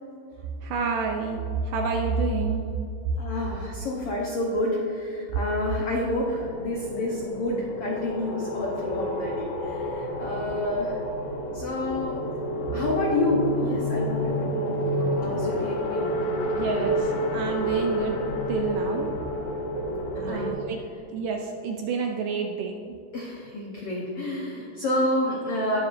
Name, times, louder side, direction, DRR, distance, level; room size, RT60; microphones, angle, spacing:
voice 1, 0.6-2.6 3.7-3.9 10.2-10.5 16.6-18.2 18.5-19.1 20.2-20.8 21.1-23.0, right 4 dB, 80° right, 3 dB, 1.9 m, -29 dB
voice 2, 3.2-11.0 11.5-12.2 12.7-16.1 20.1-20.5 23.1-25.8, left 1 dB, 85° left, -2 dB, 1.3 m, -29 dB
sound 1, 6.3-20.5, equal, 70° left, 2.1 m, -29 dB
19.0 x 7.0 x 2.6 m, 2.7 s
omnidirectional pair, 4.3 m